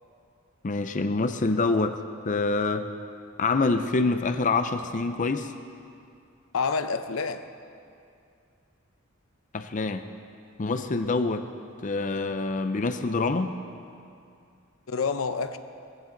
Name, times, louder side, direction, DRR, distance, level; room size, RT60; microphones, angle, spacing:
voice 1, 0.6-2.9 3.4-5.5 9.5-10.0 10.6-11.5 11.8-13.6, left 3 dB, 40° left, 0.5 m, -26 dB
voice 2, 6.5-7.5 14.9-15.6, left 5 dB, 80° left, 0.7 m, -28 dB
20.0 x 15.0 x 3.9 m
head